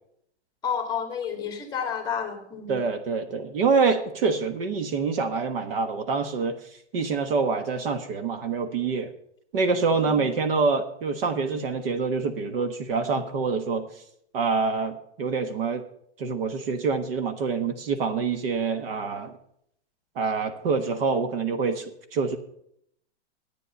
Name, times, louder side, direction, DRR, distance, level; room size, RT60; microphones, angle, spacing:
voice 1, 0.6-2.8 10.0-10.1, left 7 dB, 10° left, 4 dB, 1.8 m, -30 dB
voice 2, 2.7-6.6 6.9-9.1 9.5-13.9 14.3-15.8 16.2-19.3 20.1-21.8 22.1-22.4, right 4 dB, 55° right, 8 dB, 1.4 m, -26 dB
11.5 x 9.2 x 5.4 m, 0.71 s
hypercardioid pair, 155°, 34 cm